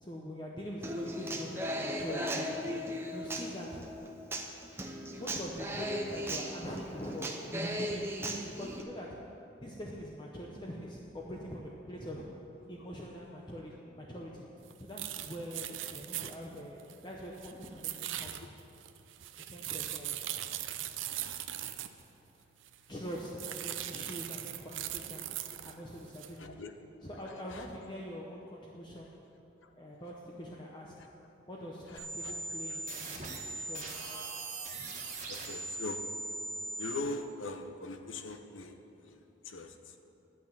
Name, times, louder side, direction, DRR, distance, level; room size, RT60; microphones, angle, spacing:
voice 1, 0.0-2.8 3.1-3.9 5.1-9.3 9.6-12.3 12.7-14.5 14.8-18.5 19.5-20.3 22.9-26.6 27.0-29.2 29.8-31.1 31.5-34.0, equal, 25° left, -2 dB, 0.8 m, -43 dB
Human voice / Acoustic guitar, 0.8-8.8, equal, 10° right, 0.7 m, -37 dB
sound 1, 14.7-14.8 15.0-17.0 17.4-22.0 22.6-22.8 23.1-25.7 26.1-26.4, right 12 dB, 85° right, 0.5 m, -40 dB
voice 2, 26.4-26.7 27.5-27.7 29.6-29.7 31.9-32.4 32.7-32.8 33.8-33.9 35.3-36.0 36.8-40.0, left 2 dB, 85° left, 6 dB, 0.8 m, -42 dB
sound 2, 32.0-37.0, right 2 dB, 35° right, 1.6 m, -40 dB
11.0 x 6.0 x 8.6 m, 2.9 s
head